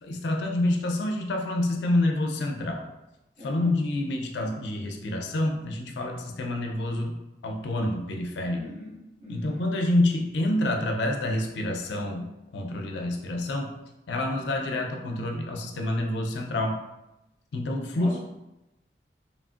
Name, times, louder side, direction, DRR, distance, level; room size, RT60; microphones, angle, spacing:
voice 1, 0.0-2.8 3.4-7.2 7.4-8.6 9.3-13.7 14.1-16.8 17.5-18.2, left 1 dB, 80° left, 2 dB, 0.4 m, -27 dB
voice 2, 3.4-3.7 8.5-9.6 17.9-18.2, left 1 dB, 35° right, -10 dB, 1.5 m, -41 dB
3.1 x 2.4 x 2.3 m, 0.94 s
head